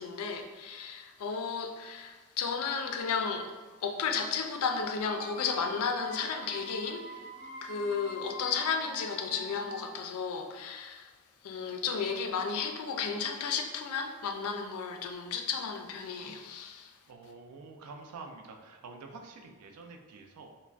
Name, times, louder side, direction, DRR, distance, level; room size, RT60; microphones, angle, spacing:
voice 1, 0.0-3.5 3.8-7.2 7.6-11.1 11.4-16.9, left 5 dB, 75° left, 4 dB, 0.3 m, -33 dB
sound 1, 5.0-10.1, equal, 15° right, 0.6 m, -45 dB
voice 2, 17.1-20.5, right 4 dB, 85° right, 3 dB, 0.4 m, -47 dB
2.4 x 2.0 x 3.2 m, 1.4 s
head